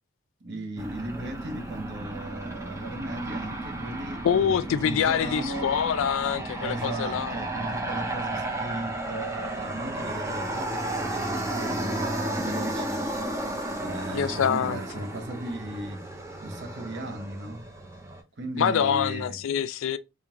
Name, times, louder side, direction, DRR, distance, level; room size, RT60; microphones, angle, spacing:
voice 1, 0.4-5.8 6.6-17.7 18.3-19.4, right 1 dB, 55° right, 0.9 m, -36 dB
Aircraft, 0.8-18.2, right 1 dB, 15° right, 0.6 m, -33 dB
voice 2, 4.2-7.3 14.1-14.8 18.6-20.0, left 7 dB, 65° left, 0.3 m, -25 dB
3.6 x 2.8 x 3.5 m
head